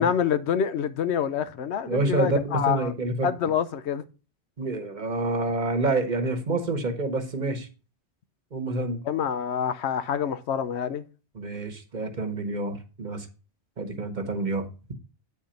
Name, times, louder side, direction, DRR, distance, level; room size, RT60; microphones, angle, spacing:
voice 1, 0.0-2.9 3.2-4.1 9.0-11.0, left 8 dB, 85° left, 1.0 m, -26 dB
voice 2, 1.9-3.3 4.6-7.7 8.5-9.0 11.3-13.3 13.8-14.7, right 2 dB, 45° right, 1.1 m, -28 dB
8.4 x 4.4 x 5.1 m
omnidirectional pair, 1.1 m